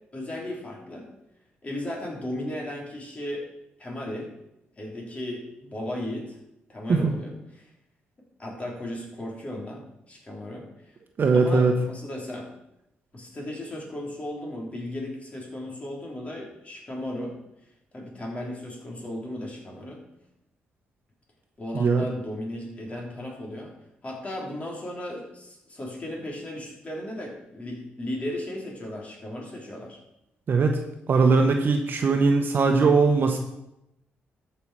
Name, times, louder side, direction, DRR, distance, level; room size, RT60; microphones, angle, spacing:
voice 1, 0.1-1.1 1.6-3.4 3.8-4.3 4.8-6.4 6.7-7.7 8.4-9.8 10.1-10.7 11.3-12.5 13.1-17.4 17.9-20.0 21.6-23.7 24.0-30.0, left 1 dB, 30° left, -1 dB, 3.5 m, -35 dB
voice 2, 11.2-11.8 21.7-22.0 30.5-30.8 31.1-33.4, right 4 dB, 50° right, 4 dB, 1.1 m, -20 dB
13.5 x 5.7 x 4.9 m, 0.86 s
cardioid pair, 85°, 4 cm